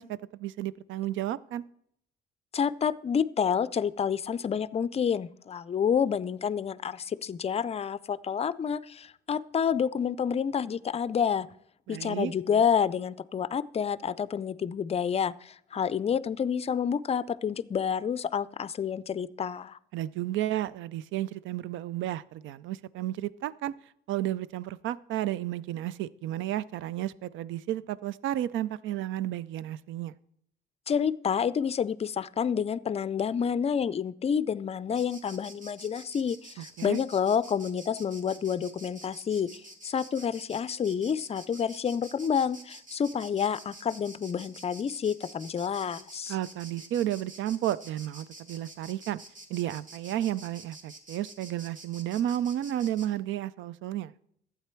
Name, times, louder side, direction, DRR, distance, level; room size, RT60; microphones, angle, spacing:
voice 1, 0.0-1.6 11.9-12.3 19.9-23.7 24.1-30.1 36.8-37.0 46.3-49.2 49.5-54.1, right 12 dB, 80° right, 19 dB, 0.4 m, -32 dB
voice 2, 2.5-11.5 11.9-19.8 30.9-46.4, left 7 dB, 30° left, 18 dB, 0.4 m, -29 dB
Insect, 34.9-53.1, right 2 dB, 40° right, 2.1 m, -49 dB
12.0 x 8.4 x 4.5 m, 0.69 s
cardioid pair, 90°, 20 cm